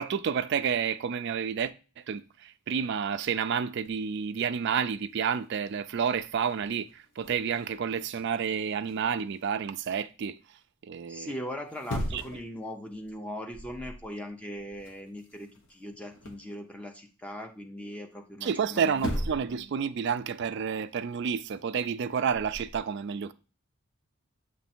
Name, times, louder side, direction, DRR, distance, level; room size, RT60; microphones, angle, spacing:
voice 1, 0.0-1.7 2.1-10.4 10.8-11.3 12.1-12.2 18.4-23.3, right 7 dB, 55° right, 0.3 m, -30 dB
sound 1, 3.8-4.2 4.8-4.9 5.2-9.5 11.6-12.6 12.9-13.2 13.5-14.1 14.3-16.5 18.5-18.6 18.9-19.7 19.9-22.8, equal, 60° left, 1.0 m, -40 dB
voice 2, 11.1-19.3, equal, 5° left, 0.6 m, -40 dB
7.1 x 3.2 x 4.3 m
head